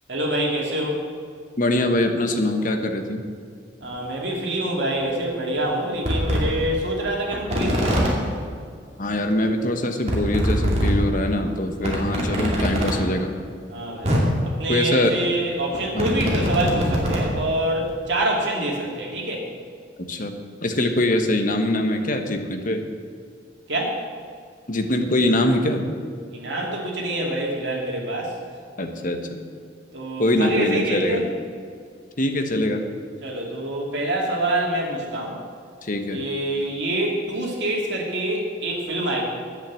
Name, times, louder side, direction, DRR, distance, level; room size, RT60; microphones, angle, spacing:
voice 1, 0.1-1.0 3.8-8.2 13.7-14.2 14.4-19.5 23.7-24.0 26.3-28.4 29.9-31.3 33.2-35.4 36.1-39.2, right 1 dB, 65° right, -2 dB, 2.7 m, -26 dB
voice 2, 1.6-3.2 9.0-13.4 14.7-15.2 15.9-16.1 20.0-22.8 24.7-25.9 28.8-29.3 30.2-31.2 32.2-32.8 35.8-36.2, left 1 dB, 45° left, 5 dB, 1.1 m, -23 dB
sound 1, 3.8-3.9 5.0-5.1 5.6-5.7 6.0-6.4 7.3-8.1 9.2-9.3 9.5-9.6 10.0-10.9 11.3-11.4 11.8-12.9 13.7-13.8 14.0-14.2 15.5-17.3 17.8-17.9, equal, 35° right, 2.4 m, -23 dB
10.5 x 8.3 x 7.5 m, 2.1 s
head